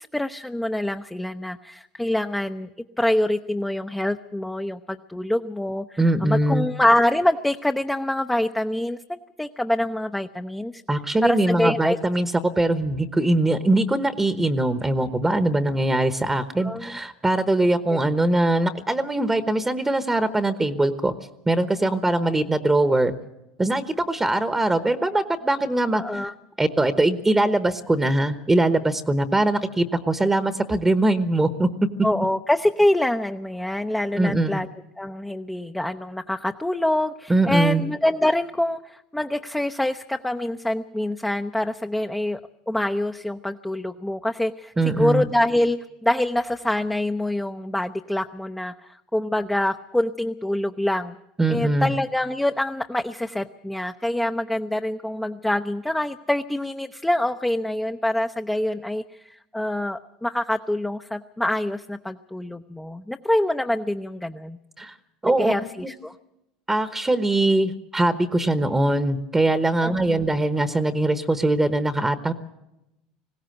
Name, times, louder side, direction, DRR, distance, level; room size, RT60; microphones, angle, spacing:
voice 1, 0.1-2.7 3.0-10.8 11.2-12.0 16.6-16.9 25.9-26.3 32.0-34.7 35.0-42.4 42.7-51.1 51.5-64.6 65.3-65.6 65.9-66.1 69.8-70.2, left 1 dB, 5° left, 5 dB, 0.7 m, -25 dB
voice 2, 6.0-6.7 10.9-21.1 21.4-23.1 23.6-26.2 26.6-31.7 34.2-34.6 37.3-37.8 44.8-45.3 51.4-51.9 64.8-64.9 65.2-65.5 66.7-72.3, right 2 dB, 10° right, 11 dB, 1.0 m, -22 dB
20.5 x 16.5 x 7.8 m, 0.89 s
supercardioid pair, 110°, 3 cm